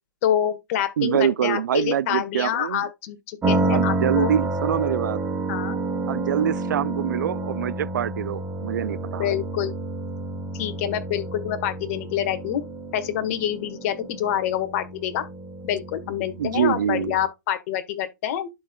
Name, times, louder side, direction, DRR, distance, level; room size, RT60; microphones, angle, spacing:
voice 1, 0.2-4.3 5.5-5.8 9.2-9.7 10.5-12.6 12.9-15.2 15.6-18.5, left 10 dB, 45° left, 1.5 m, -26 dB
voice 2, 1.0-2.8 3.7-5.2 6.1-9.3 16.4-17.2, right 10 dB, 70° right, 0.4 m, -25 dB
sound 1, 3.4-17.3, right 2 dB, 15° right, 1.5 m, -29 dB
11.5 x 4.5 x 2.3 m
hypercardioid pair, 130°, 10 cm